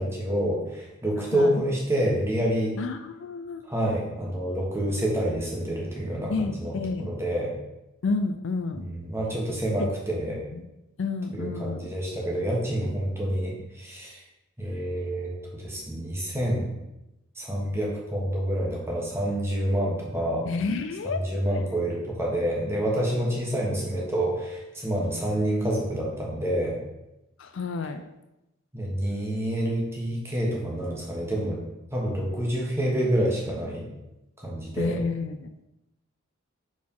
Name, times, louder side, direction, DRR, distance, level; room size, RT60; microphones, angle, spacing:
voice 1, 0.0-2.7 3.6-7.5 8.9-10.4 11.3-14.2 14.6-16.7 17.4-20.5 21.2-26.8 28.7-31.6 31.9-33.8 34.4-35.0, right 1 dB, 10° right, -3 dB, 1.3 m, -28 dB
voice 2, 1.3-1.7 2.8-3.6 6.3-7.1 8.0-8.8 9.8-9.9 10.5-10.6 11.0-11.9 20.5-21.3 27.4-28.0 34.8-35.5, left 4 dB, 60° left, 8 dB, 0.4 m, -30 dB
4.7 x 4.2 x 5.4 m, 0.93 s
head